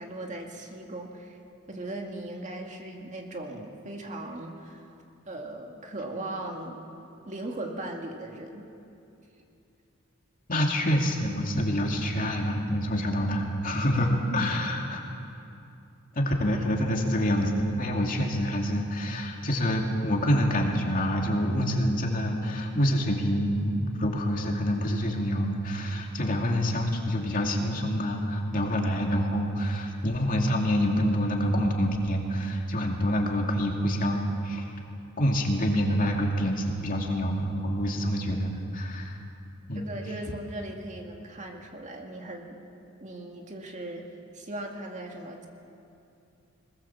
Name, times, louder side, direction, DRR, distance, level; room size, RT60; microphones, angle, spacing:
voice 1, 0.0-1.4 1.7-4.9 5.3-6.8 7.3-8.7 14.3-14.5 39.7-42.6 43.0-45.5, right 1 dB, 35° right, 2 dB, 2.2 m, -38 dB
voice 2, 10.5-15.0 16.1-34.7 35.2-39.2 39.7-39.9, equal, 40° left, 0 dB, 2.5 m, -27 dB
22.5 x 20.5 x 7.3 m, 2.7 s
head